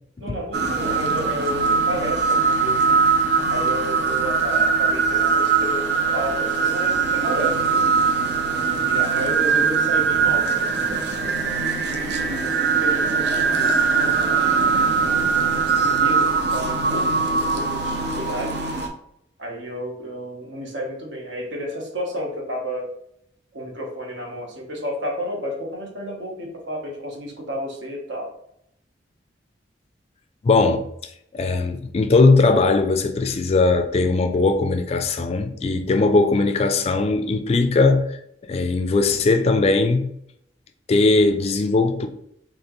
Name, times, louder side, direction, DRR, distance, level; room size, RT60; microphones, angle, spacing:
voice 1, 0.2-3.0 3.5-7.9 8.6-11.6 12.2-14.7 15.4-17.2 17.6-18.6 19.4-22.9 23.5-28.3, equal, 75° right, 1.0 m, -32 dB
sound 1, 0.5-18.9, right 5 dB, 60° right, 0.6 m, -21 dB
voice 2, 30.4-30.9 31.3-38.2 38.5-40.1 40.9-42.1, left 3 dB, 35° left, 0.3 m, -19 dB
4.2 x 2.9 x 3.0 m
head